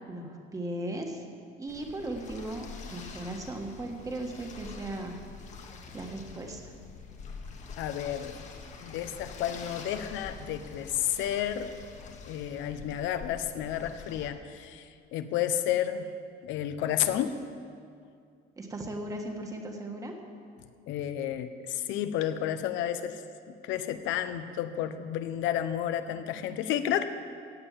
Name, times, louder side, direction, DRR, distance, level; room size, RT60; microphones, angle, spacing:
voice 1, 0.1-1.2 1.6-5.1 5.9-6.7 18.6-20.2, right 1 dB, 15° right, 2 dB, 1.4 m, -37 dB
sound 1, 1.7-14.3, left 4 dB, 40° left, 1.4 m, -46 dB
voice 2, 7.8-8.4 8.8-11.7 12.2-14.8 15.1-16.1 16.4-17.3 20.9-23.2 23.6-27.0, left 11 dB, 80° left, 10 dB, 0.9 m, -31 dB
16.0 x 8.8 x 7.4 m, 2.3 s
cardioid pair, 165°, 19 cm